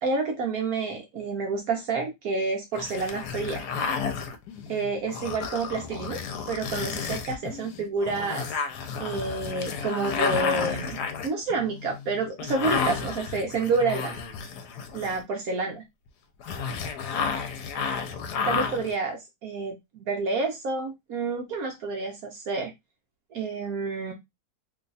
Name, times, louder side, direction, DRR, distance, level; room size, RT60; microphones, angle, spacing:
voice 1, 0.0-3.7 4.7-8.5 9.0-14.2 14.9-15.8 18.4-22.7 23.3-24.1, right 3 dB, 70° right, 1.2 m, -29 dB
sound 1, 2.8-15.4 16.4-18.9, left 6 dB, 85° left, 1.2 m, -32 dB
3.2 x 2.3 x 3.9 m
omnidirectional pair, 1.7 m